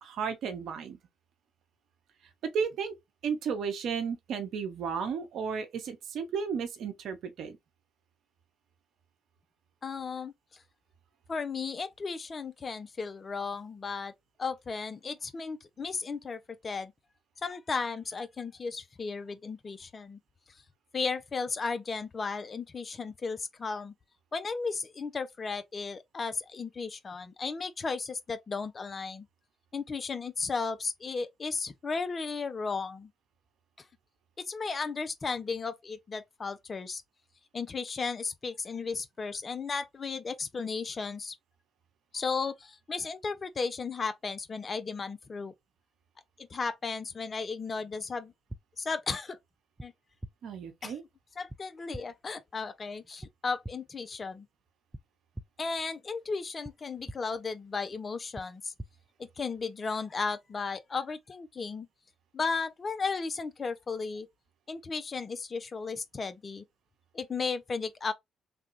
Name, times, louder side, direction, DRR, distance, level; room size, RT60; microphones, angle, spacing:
voice 1, 0.0-1.0 2.4-2.9 3.2-7.6 50.4-51.0, right 6 dB, 65° right, 0.8 m, -33 dB
voice 2, 9.8-10.6 11.3-14.1 14.4-16.9 17.4-20.2 20.9-23.9 24.3-29.3 29.7-33.1 34.4-37.0 37.5-41.3 42.1-45.5 46.4-48.3 48.8-49.4 49.8-49.9 50.8-50.9 51.4-54.5 55.6-58.7 59.2-61.9 62.3-64.3 64.7-66.6 67.1-68.1, left 4 dB, 40° left, 0.6 m, -35 dB
sound 1, 48.5-48.6 49.8-49.9 50.2-50.3 51.5-51.6 51.9-52.0 53.2-53.3 53.6-53.7 54.9-55.0 55.3-55.4 56.6-56.7 57.1-57.2 58.3-58.4 58.8-58.9, right 1 dB, 10° right, 0.5 m, -41 dB
3.4 x 2.3 x 2.9 m
hypercardioid pair, 50°, 0 cm